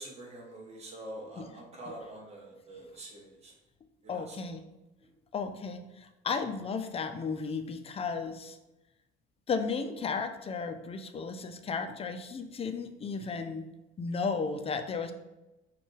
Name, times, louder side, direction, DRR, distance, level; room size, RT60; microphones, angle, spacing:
voice 1, 0.0-3.5 4.0-4.5, right 1 dB, 30° right, -2 dB, 1.2 m, -45 dB
voice 2, 4.1-4.6 5.3-8.6 9.5-13.7 14.0-15.1, left 5 dB, 30° left, 8 dB, 0.4 m, -34 dB
5.3 x 2.3 x 3.2 m, 0.97 s
cardioid pair, 120°, 21 cm